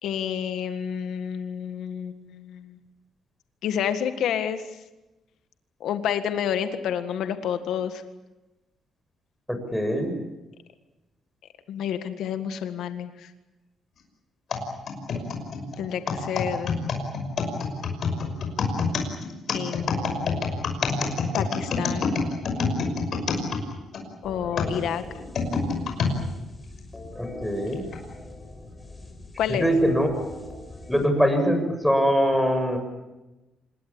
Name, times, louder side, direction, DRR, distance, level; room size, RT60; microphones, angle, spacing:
voice 1, 0.0-2.8 3.6-4.6 5.8-8.0 11.7-13.3 15.8-16.7 19.5-20.5 21.4-22.2 24.2-25.0 29.4-29.7, left 9 dB, 80° left, 9 dB, 1.7 m, -29 dB
voice 2, 9.5-10.1 27.2-27.8 29.6-30.1 30.9-32.8, equal, ahead, 6 dB, 7.4 m, -22 dB
sound 1, 14.5-24.0 24.6-26.2 26.8-26.9 27.7-28.0, left 4 dB, 60° left, 5.9 m, -27 dB
sound 2, 24.2-31.9, left 1 dB, 20° left, 6.3 m, -41 dB
26.5 x 21.0 x 8.8 m, 1.0 s
cardioid pair, 90°, 0 cm